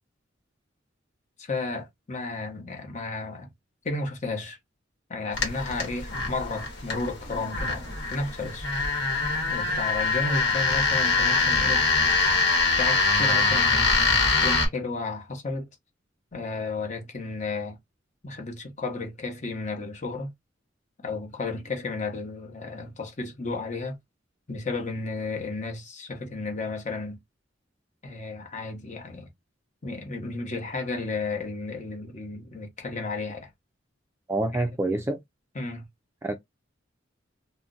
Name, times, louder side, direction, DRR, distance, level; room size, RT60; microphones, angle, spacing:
voice 1, 1.4-3.5 3.8-4.6 5.1-8.7 9.5-11.8 12.8-15.7 16.3-17.8 18.2-20.3 21.0-24.0 24.5-27.2 28.0-29.3 29.8-33.5 34.5-34.6 35.5-35.9, left 3 dB, 40° left, 0.9 m, -33 dB
sound 1, 5.3-14.7, left 3 dB, 60° left, 1.1 m, -24 dB
voice 2, 34.3-35.2 36.2-36.3, right 2 dB, 15° right, 0.3 m, -26 dB
2.4 x 2.1 x 3.7 m
head